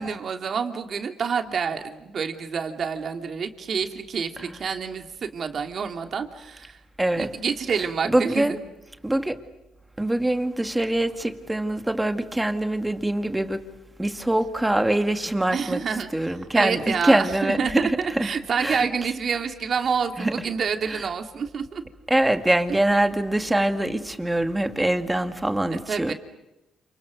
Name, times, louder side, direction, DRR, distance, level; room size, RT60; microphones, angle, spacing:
voice 1, 0.0-6.8 7.1-8.6 15.5-21.8 22.7-22.8 25.9-26.1, right 6 dB, 50° right, 2.9 m, -28 dB
voice 2, 7.0-7.3 8.1-8.6 9.0-9.4 10.0-13.6 14.0-15.8 16.1-17.8 18.2-18.3 18.6-18.9 20.2-20.3 20.9-21.0 22.1-26.1, right 1 dB, 10° right, 2.1 m, -23 dB
29.5 x 28.0 x 6.6 m
cardioid pair, 90°, 0 cm